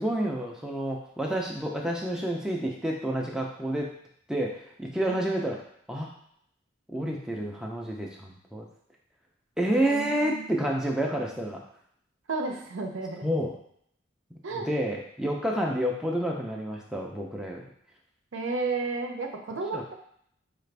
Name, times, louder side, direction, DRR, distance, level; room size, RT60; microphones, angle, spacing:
voice 1, 0.0-3.9 4.3-5.6 5.9-6.1 6.9-8.7 9.6-11.6 13.2-13.5 14.5-17.6 19.7-19.8, right 1 dB, 5° right, -1 dB, 0.4 m, -29 dB
voice 2, 9.7-10.5 12.3-13.3 14.4-14.7 18.3-20.0, right 3 dB, 80° right, 3 dB, 0.6 m, -32 dB
4.8 x 2.5 x 3.3 m, 0.68 s
head